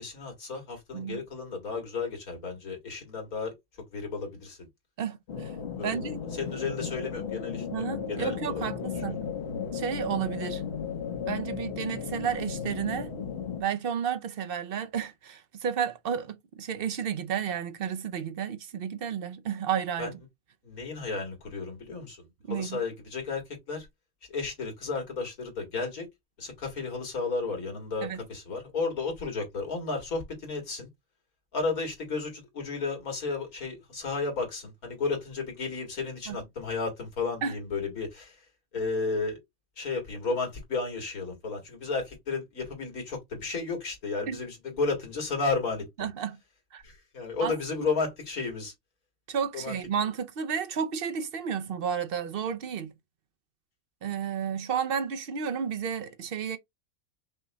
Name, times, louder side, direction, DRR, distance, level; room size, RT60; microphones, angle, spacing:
voice 1, 0.0-3.5 3.9-4.6 5.8-8.9 20.0-20.1 20.6-23.9 24.3-26.1 26.4-30.9 31.5-38.4 38.7-39.4 39.8-46.1 46.8-48.7 49.5-49.8, left 4 dB, 80° left, 2.3 m, -33 dB
voice 2, 0.9-1.2 5.0-5.5 5.8-6.2 7.7-9.3 9.7-10.6 11.3-13.1 13.6-20.1 22.5-22.8 28.0-28.2 36.3-36.4 37.4-37.6 44.3-44.4 46.0-46.4 46.7-46.8 47.4-47.5 49.3-52.9 54.0-56.6, right 7 dB, 60° right, 0.6 m, -32 dB
sound 1, 5.3-13.6, left 7 dB, 55° left, 1.0 m, -35 dB
5.5 x 2.2 x 3.9 m
omnidirectional pair, 1.5 m